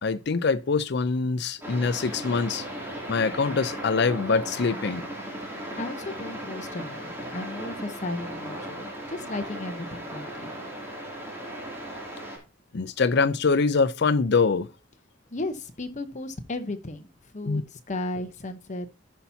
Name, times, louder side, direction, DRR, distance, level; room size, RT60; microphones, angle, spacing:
voice 1, 0.0-2.6 3.1-5.0 12.7-14.7 17.4-17.6, left 4 dB, 60° left, 0.5 m, -24 dB
sound 1, 1.6-12.4, right 1 dB, 10° right, 2.7 m, -37 dB
voice 2, 5.8-10.6 15.3-17.1 17.3-18.9, left 2 dB, 40° left, 0.9 m, -35 dB
16.0 x 5.7 x 2.7 m
head